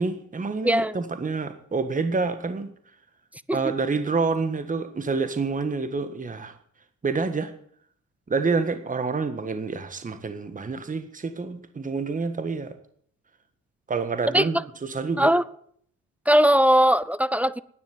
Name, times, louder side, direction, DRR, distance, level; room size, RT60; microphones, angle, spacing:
voice 1, 0.0-2.7 3.5-6.5 7.0-7.5 8.3-12.8 13.9-15.3, right 4 dB, 25° right, 9 dB, 1.6 m, -28 dB
voice 2, 0.6-1.0 3.5-3.7 14.3-14.6 15.2-15.4 16.3-17.6, equal, 5° right, 18 dB, 0.6 m, -20 dB
11.0 x 9.7 x 9.5 m, 0.63 s
cardioid pair, 90°, 30 cm